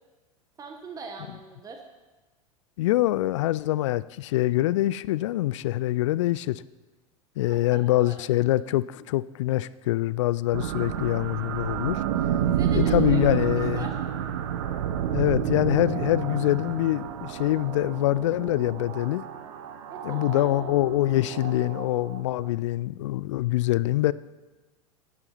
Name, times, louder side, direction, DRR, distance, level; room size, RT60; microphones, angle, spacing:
voice 1, 0.6-1.8 7.4-8.1 12.4-13.2 13.7-13.9 19.9-20.4, right 5 dB, 20° right, 3 dB, 1.1 m, -41 dB
voice 2, 2.8-6.6 7.4-12.0 12.7-13.9 15.1-19.2 20.0-24.1, left 16 dB, 60° left, 19 dB, 0.4 m, -24 dB
sound 1, 10.5-22.5, right 9 dB, 60° right, 0.9 m, -30 dB
12.0 x 9.7 x 4.1 m, 1.2 s
figure-of-eight pair, 85°, 18 cm